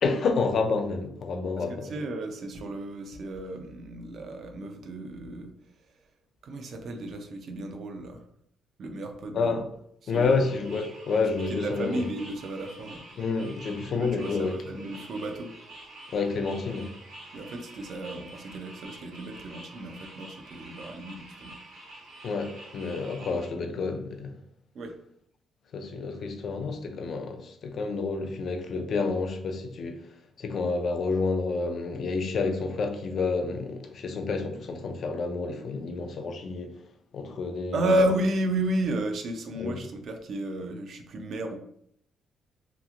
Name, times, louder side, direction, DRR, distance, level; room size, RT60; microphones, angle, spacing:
voice 1, 0.0-1.9 9.3-9.7 10.1-12.0 13.2-14.6 16.1-16.9 22.2-24.4 25.7-30.1 30.4-36.7 37.1-38.0 39.6-39.8, left 4 dB, 60° left, 0.4 m, -29 dB
voice 2, 1.8-5.5 6.4-8.2 8.8-9.6 10.0-10.5 11.5-13.0 13.9-15.5 17.3-21.6 24.7-25.0 37.7-41.6, right 1 dB, 60° right, 0.4 m, -32 dB
sound 1, 10.1-23.5, right 2 dB, 85° right, 1.0 m, -47 dB
2.9 x 2.4 x 2.4 m
cardioid pair, 90°, 0 cm